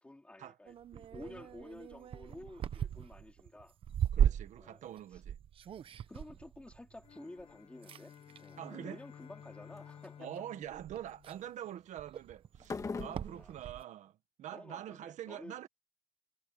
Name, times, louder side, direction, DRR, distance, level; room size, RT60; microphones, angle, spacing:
voice 1, 0.0-3.8 4.6-4.9 5.1-5.2 6.1-10.3 13.4-13.7 14.5-15.6, left 2 dB, 10° left, 2.6 m, -51 dB
sound 1, 0.7-7.5 7.8-8.6 9.4-9.8 10.3-10.4 10.7-13.8, right 9 dB, 45° right, 0.7 m, -37 dB
voice 2, 4.1-5.4 8.6-9.0 10.2-15.7, right 11 dB, 80° right, 1.5 m, -45 dB
sound 2, 7.0-11.7, left 8 dB, 50° left, 1.2 m, -55 dB
sound 3, 7.2-7.5 7.9-8.4 8.9-9.3 9.8-10.0 12.6-13.4, left 4 dB, 25° left, 1.5 m, -42 dB
cardioid pair, 170°, 12 cm